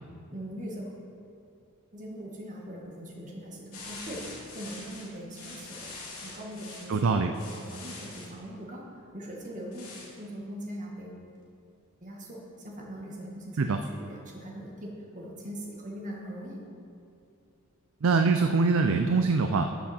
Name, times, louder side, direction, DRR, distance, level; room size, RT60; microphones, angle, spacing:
voice 1, 0.3-0.9 1.9-5.9 6.2-7.3 7.7-9.9 10.2-11.3 12.0-16.6, equal, 35° right, -2 dB, 1.8 m, -41 dB
sound 1, 3.7-6.9 7.3-8.3 9.7-10.1, left 3 dB, 75° left, 2.5 m, -44 dB
voice 2, 6.9-7.3 13.6-13.8 18.0-19.7, right 4 dB, 60° right, 7 dB, 0.5 m, -23 dB
13.0 x 7.3 x 4.4 m, 2.6 s
head